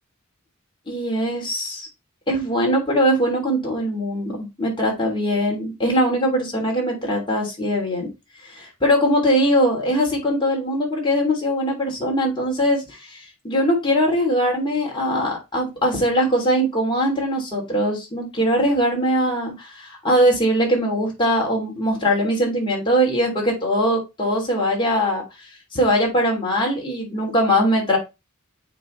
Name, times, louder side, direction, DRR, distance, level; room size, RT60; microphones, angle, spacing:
voice 1, 0.9-1.9 2.3-8.1 8.4-25.2 25.7-28.0, equal, 25° left, -1 dB, 3.0 m, -21 dB
8.3 x 4.1 x 3.2 m, 0.24 s
head